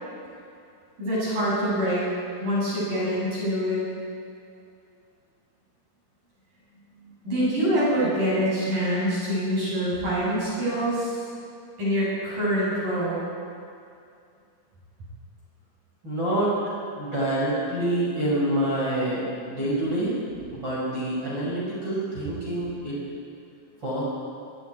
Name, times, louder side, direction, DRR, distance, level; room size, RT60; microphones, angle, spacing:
voice 1, 1.0-2.0 2.4-3.8 7.0-11.2 11.8-13.2 19.1-19.6, equal, 40° right, -8 dB, 9.2 m, -25 dB
voice 2, 16.0-16.5 17.0-20.1 20.5-23.0 23.8-24.0, right 1 dB, 25° right, -8 dB, 6.1 m, -26 dB
25.0 x 23.5 x 4.7 m, 2.5 s
omnidirectional pair, 5.7 m